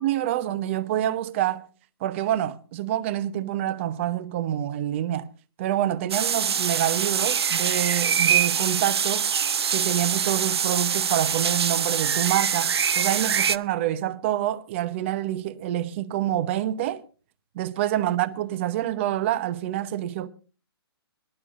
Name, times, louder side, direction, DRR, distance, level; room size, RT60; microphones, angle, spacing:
voice 1, 0.0-1.7 2.0-5.3 5.6-9.3 9.7-17.0 17.5-20.3, right 12 dB, 30° right, 0.9 m, -27 dB
sound 1, 6.1-13.6, right 7 dB, 75° right, 0.7 m, -24 dB
25.0 x 12.0 x 2.6 m
hypercardioid pair, 160°, 14 cm